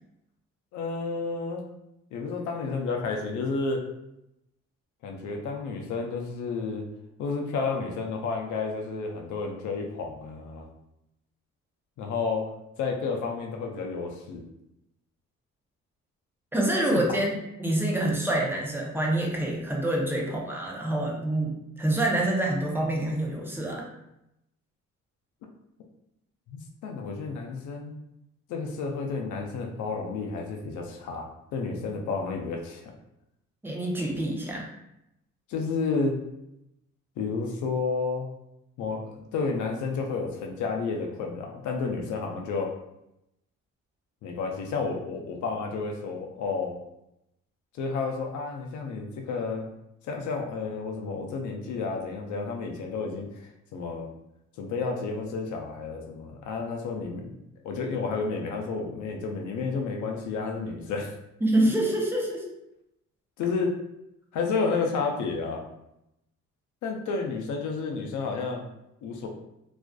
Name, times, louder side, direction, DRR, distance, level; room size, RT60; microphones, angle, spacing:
voice 1, 0.7-1.6 2.1-3.8 5.0-6.8 7.2-10.7 12.0-12.4 12.8-14.4 16.9-17.0 26.5-27.9 28.5-32.9 35.5-36.1 37.2-38.3 38.8-42.7 44.2-46.8 47.8-49.7 50.0-54.1 54.6-57.4 57.6-61.1 63.4-63.7 64.3-65.6 66.8-68.6 69.0-69.3, left 4 dB, 75° left, 2 dB, 0.5 m, -31 dB
voice 2, 16.5-23.8 33.6-34.6 61.4-62.4, right 1 dB, 5° right, -2 dB, 0.5 m, -26 dB
2.4 x 2.3 x 2.2 m, 0.85 s
cardioid pair, 90°, 30 cm